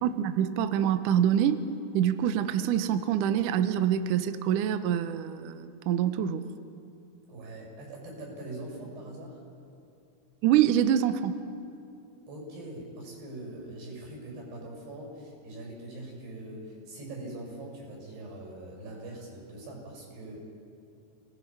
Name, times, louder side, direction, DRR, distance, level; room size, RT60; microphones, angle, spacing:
voice 1, 0.0-1.6 1.9-6.4 10.4-11.3, right 10 dB, 90° right, 10 dB, 1.8 m, -25 dB
voice 2, 7.3-9.4 12.3-20.4, right 1 dB, 75° right, -1 dB, 8.4 m, -42 dB
29.0 x 19.0 x 5.6 m, 2.6 s
omnidirectional pair, 4.9 m